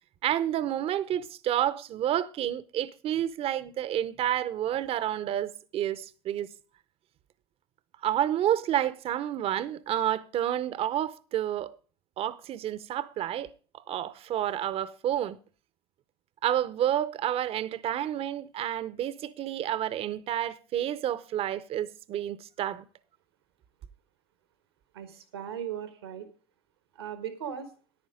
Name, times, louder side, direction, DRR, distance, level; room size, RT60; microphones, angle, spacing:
voice 1, 0.2-6.5 8.0-11.7 12.2-15.4 16.4-22.8, right 11 dB, 50° right, 0.8 m, -30 dB
voice 2, 24.9-26.3 26.9-27.7, right 9 dB, 90° right, 1.4 m, -37 dB
10.0 x 9.6 x 5.0 m
hypercardioid pair, 70°, 13 cm